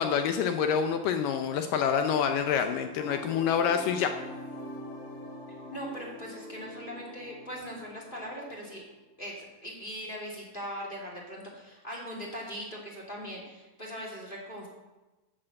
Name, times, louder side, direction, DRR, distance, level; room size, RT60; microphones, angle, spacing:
voice 1, 0.0-4.1, left 7 dB, 75° left, 7 dB, 2.1 m, -27 dB
sound 1, 3.0-8.8, left 2 dB, 45° left, 2.5 m, -44 dB
voice 2, 5.7-8.8 9.2-14.7, equal, 15° left, -3 dB, 2.1 m, -40 dB
11.5 x 6.6 x 7.7 m, 1.1 s
omnidirectional pair, 4.2 m